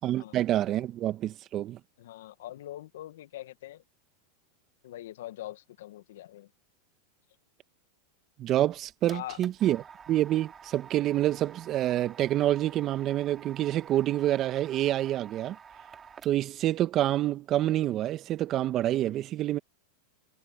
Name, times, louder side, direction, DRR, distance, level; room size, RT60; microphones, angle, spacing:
voice 1, 0.0-1.8 8.4-15.6 16.2-19.6, right 13 dB, 40° right, 1.9 m, -27 dB
voice 2, 2.0-3.8 4.8-6.5 9.1-9.4, left 14 dB, 75° left, 1.9 m, -42 dB
sound 1, 8.7-16.7, right 6 dB, 25° right, 3.3 m, -50 dB
hypercardioid pair, 105°, 0 cm